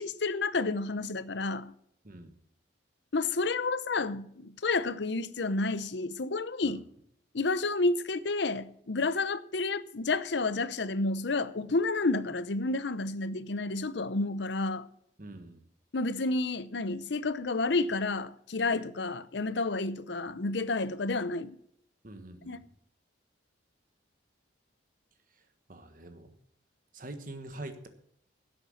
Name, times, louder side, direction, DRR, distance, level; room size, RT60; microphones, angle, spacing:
voice 1, 0.0-1.7 3.1-6.8 7.3-14.9 15.9-21.6 22.5-22.6, left 3 dB, 65° left, 0.7 m, -30 dB
voice 2, 15.2-15.6 22.0-22.6 25.7-26.3 26.9-27.9, right 2 dB, 45° right, 1.4 m, -44 dB
11.5 x 8.0 x 7.1 m
head